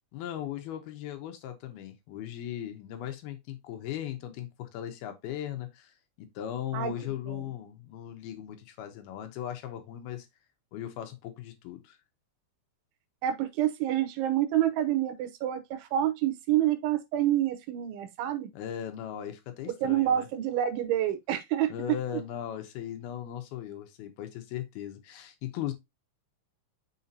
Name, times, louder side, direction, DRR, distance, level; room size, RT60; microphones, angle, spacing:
voice 1, 0.1-10.3 10.7-12.0 18.5-20.3 21.7-25.7, left 11 dB, 75° left, 2.4 m, -38 dB
voice 2, 13.2-18.5 19.8-21.7, right 12 dB, 80° right, 3.3 m, -28 dB
6.6 x 5.5 x 2.8 m
omnidirectional pair, 5.4 m